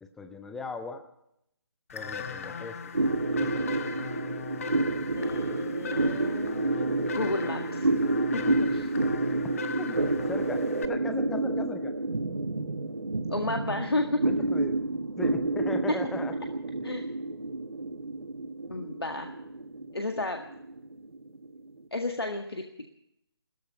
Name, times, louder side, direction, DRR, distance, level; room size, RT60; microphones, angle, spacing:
voice 1, 0.0-1.0 1.9-2.8 3.4-3.7 9.4-9.5 9.8-11.9 14.2-14.8 15.2-16.3, left 3 dB, 5° left, 8 dB, 0.5 m, -38 dB
sound 1, 1.9-10.9, left 6 dB, 35° left, 1.0 m, -39 dB
sound 2, 2.9-21.7, right 2 dB, 70° right, 1.4 m, -29 dB
voice 2, 5.1-6.9 7.1-7.9 8.3-8.4 8.7-8.9 13.3-14.2 16.8-17.1 18.7-19.3 19.9-20.4 21.9-22.6, left 2 dB, 70° left, 4 dB, 1.8 m, -32 dB
16.5 x 14.0 x 5.9 m, 0.77 s
figure-of-eight pair, 150°, 13 cm